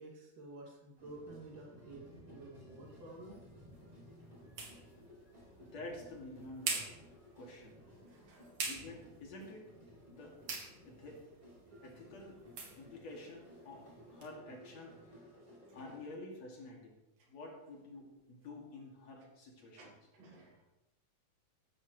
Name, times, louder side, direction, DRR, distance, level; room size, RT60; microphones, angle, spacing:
voice 1, 0.0-3.4 4.2-4.3 7.8-8.5 17.2-17.3 19.8-20.6, right 2 dB, 70° right, -2 dB, 4.1 m, -52 dB
sound 1, 1.0-16.1, equal, 10° right, 3.6 m, -57 dB
sound 2, 2.8-14.3, right 4 dB, 50° right, 3.0 m, -47 dB
voice 2, 5.6-7.0 7.4-7.8 8.6-9.6 10.1-10.4 10.8-11.2 11.8-12.4 12.7-15.2 15.7-17.0 17.3-19.9, left 2 dB, 55° left, -2 dB, 3.4 m, -49 dB
14.5 x 12.5 x 3.2 m, 0.99 s
omnidirectional pair, 3.9 m